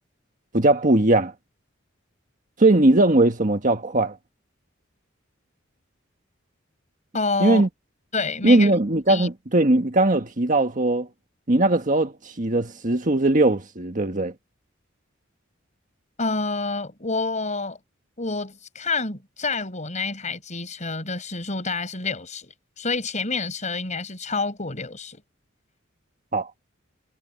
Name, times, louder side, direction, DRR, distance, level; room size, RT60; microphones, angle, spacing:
voice 1, 0.5-1.3 2.6-4.2 7.4-7.7 8.4-11.1 11.5-12.1 12.4-14.3 26.3-26.5, right 2 dB, 40° right, 1.5 m, -19 dB
voice 2, 7.1-7.6 8.1-8.7 9.1-9.3 16.2-17.8 18.2-25.2, left 3 dB, 35° left, 5.1 m, -28 dB
head